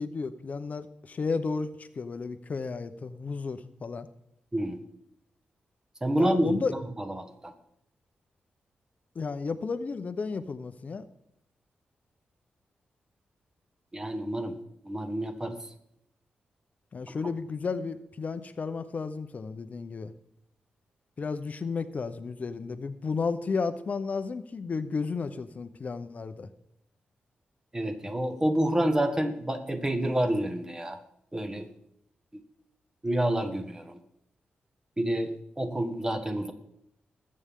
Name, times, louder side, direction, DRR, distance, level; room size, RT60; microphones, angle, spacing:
voice 1, 0.0-4.1 6.2-6.7 9.1-11.0 16.9-20.1 21.2-26.5, left 4 dB, 45° left, 10 dB, 0.8 m, -33 dB
voice 2, 6.0-6.8 7.0-7.5 13.9-14.6 14.8-15.6 27.7-31.0 31.3-31.7 33.0-34.0 35.0-36.5, right 1 dB, 15° right, 6 dB, 1.5 m, -28 dB
20.5 x 8.8 x 3.7 m, 0.77 s
cardioid pair, 100°, 3 cm